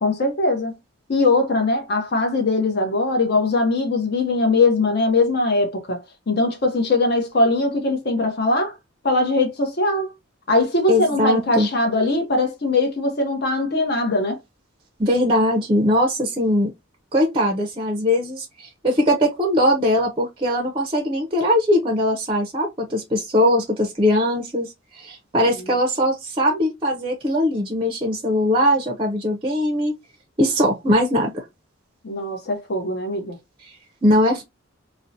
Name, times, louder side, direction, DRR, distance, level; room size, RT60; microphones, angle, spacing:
voice 1, 0.0-0.7 1.1-6.0 6.3-8.8 9.0-10.1 10.5-14.4 25.6-25.7 32.0-33.4, left 2 dB, 50° left, 0.7 m, -21 dB
voice 2, 10.9-11.7 15.0-16.7 17.1-24.7 24.9-29.9 30.4-31.4 34.0-34.4, left 1 dB, 25° right, 0.5 m, -20 dB
2.6 x 2.0 x 2.6 m
head